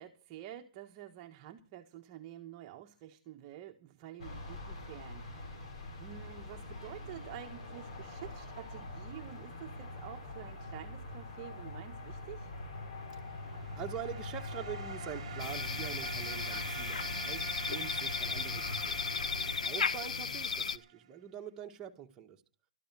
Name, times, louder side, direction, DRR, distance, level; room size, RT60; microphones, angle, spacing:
voice 1, 0.0-5.7 6.0-12.5, right 12 dB, 35° right, 1.3 m, -49 dB
sound 1, 4.2-19.5, left 2 dB, 55° left, 6.0 m, -44 dB
sound 2, 13.2-21.0, right 11 dB, 55° right, 1.3 m, -47 dB
voice 2, 13.8-19.0 19.6-22.4, right 9 dB, 20° right, 1.7 m, -44 dB
sound 3, 15.4-20.8, left 5 dB, 85° left, 0.8 m, -35 dB
13.0 x 12.5 x 6.2 m
hypercardioid pair, 140°, 4 cm